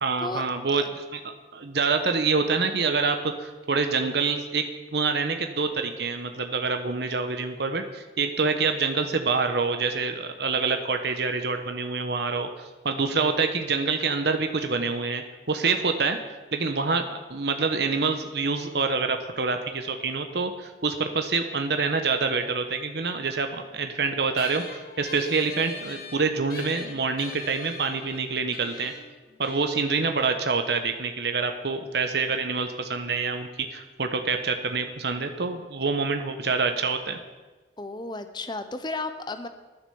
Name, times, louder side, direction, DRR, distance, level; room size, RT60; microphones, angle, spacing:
voice 1, 0.0-1.2 1.5-4.6 4.9-16.2 16.5-28.9 29.4-37.2, right 4 dB, 60° right, 6 dB, 1.0 m, -26 dB
sound 1, 24.4-31.2, left 5 dB, 50° left, 1.2 m, -43 dB
voice 2, 37.8-39.5, left 3 dB, 25° left, 9 dB, 0.7 m, -33 dB
10.0 x 9.9 x 7.0 m, 1.2 s
head